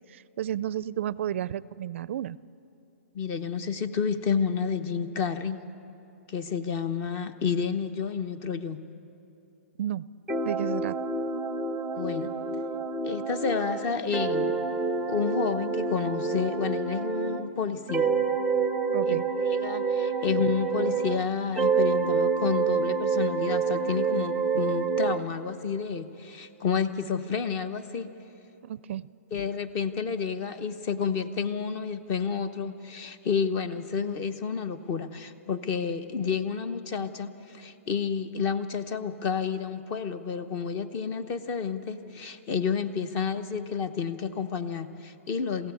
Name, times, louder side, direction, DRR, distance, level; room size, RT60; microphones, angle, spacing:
voice 1, 0.1-2.4 9.8-10.0 10.4-11.0 18.9-19.3 28.6-29.1, right 11 dB, 60° right, 20 dB, 0.4 m, -32 dB
voice 2, 3.1-5.6 6.3-8.8 12.0-12.3 13.0-14.5 15.1-18.1 19.1-28.1 29.3-45.7, left 6 dB, 30° left, 12 dB, 0.9 m, -30 dB
sound 1, 10.3-17.5 17.9-21.3 21.6-25.2, right 5 dB, 5° right, 0.7 m, -28 dB
23.0 x 16.0 x 8.4 m, 2.9 s
hypercardioid pair, 145°, 7 cm